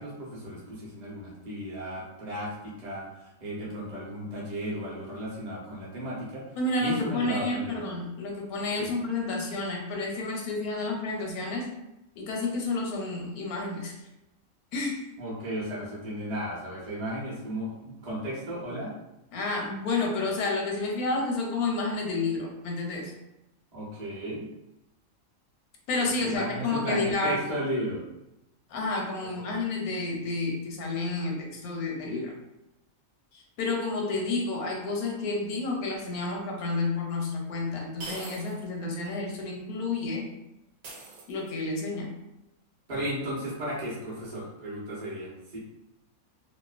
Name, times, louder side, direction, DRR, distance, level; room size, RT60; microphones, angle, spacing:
voice 1, 0.0-6.4 6.8-7.8 8.8-8.9 15.2-18.9 23.7-24.5 26.2-28.0 29.4-29.6 42.9-45.6, equal, 35° right, -5 dB, 0.7 m, -34 dB
voice 2, 6.6-11.7 12.2-14.0 14.7-15.0 19.3-23.1 25.9-27.5 28.7-32.3 33.3-40.3 41.3-42.1, left 3 dB, 90° left, 0 dB, 1.1 m, -30 dB
sound 1, 36.6-36.7 38.0-38.7 39.1-39.2 40.8-41.7, right 3 dB, 75° right, 1.0 m, -42 dB
2.8 x 2.1 x 2.3 m, 0.91 s
omnidirectional pair, 1.5 m